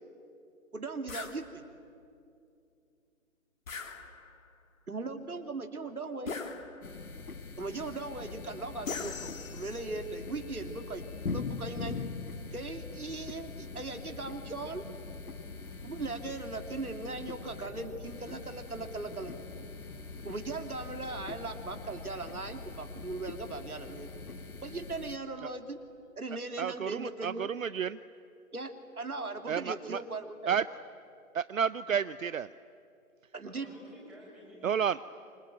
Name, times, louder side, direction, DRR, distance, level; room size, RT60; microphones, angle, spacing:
voice 1, 0.7-1.6 4.9-6.3 7.6-12.0 12.5-14.8 15.8-19.3 20.2-24.1 24.6-25.8 26.1-27.5 28.5-30.6 33.3-33.7, right 3 dB, 85° right, 6 dB, 2.9 m, -39 dB
sound 1, 1.1-1.4 3.7-4.5 6.3-7.1 8.9-10.0, left 5 dB, 65° left, 2.9 m, -40 dB
sound 2, 6.8-25.2, left 4 dB, 80° left, 1.9 m, -43 dB
Bus, 7.9-24.8, left 1 dB, 20° left, 5.3 m, -53 dB
voice 2, 26.6-28.0 29.5-30.0 30.5-30.6 31.3-32.5 34.6-35.0, right 7 dB, 65° right, 15 dB, 0.7 m, -31 dB
voice 3, 33.5-35.3, equal, ahead, -6 dB, 7.0 m, -53 dB
26.0 x 25.5 x 9.1 m, 2.6 s
figure-of-eight pair, 150°, 43 cm